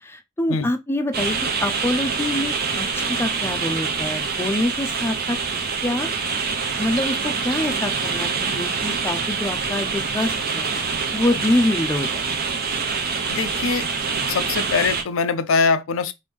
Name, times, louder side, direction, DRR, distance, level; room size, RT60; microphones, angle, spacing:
voice 1, 0.0-5.4 5.8-6.1 6.8-10.7 11.1-12.3, left 1 dB, 10° left, 0.4 m, -25 dB
sound 1, 1.1-15.0, right 5 dB, 50° right, 0.7 m, -25 dB
voice 2, 13.3-13.9 14.3-16.1, left 5 dB, 85° left, 0.4 m, -22 dB
3.0 x 2.6 x 3.4 m
head